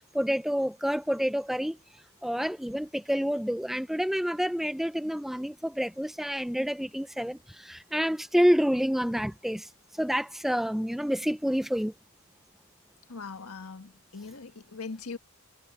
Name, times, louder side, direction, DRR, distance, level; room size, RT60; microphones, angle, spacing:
voice 1, 0.1-1.8 2.2-9.7 10.0-11.9, equal, ahead, 0.5 m, -28 dB
voice 2, 13.1-15.2, left 4 dB, 70° left, 1.6 m, -40 dB
head